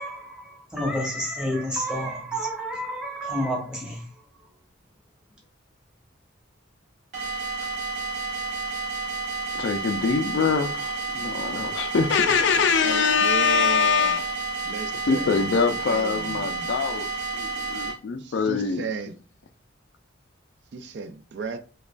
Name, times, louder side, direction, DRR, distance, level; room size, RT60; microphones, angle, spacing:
voice 1, 0.0-4.2, equal, 5° right, 1.0 m, -30 dB
sound 1, 7.1-17.9, right 3 dB, 40° right, 0.9 m, -31 dB
voice 2, 9.5-14.3 15.1-17.1 17.3-18.8, left 5 dB, 60° left, 0.3 m, -24 dB
voice 3, 12.8-14.3 14.6-16.5 18.2-19.1 20.7-21.6, right 4 dB, 60° right, 0.3 m, -35 dB
4.8 x 2.3 x 2.3 m
head